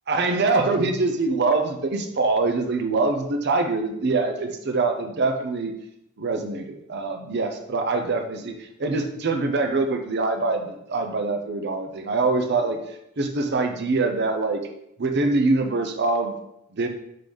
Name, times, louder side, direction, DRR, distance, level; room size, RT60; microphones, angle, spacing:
voice 1, 0.1-5.7 6.2-14.6 15.0-16.4 16.7-16.9, right 3 dB, 55° right, 5 dB, 0.7 m, -24 dB
5.0 x 3.8 x 5.3 m, 0.77 s
head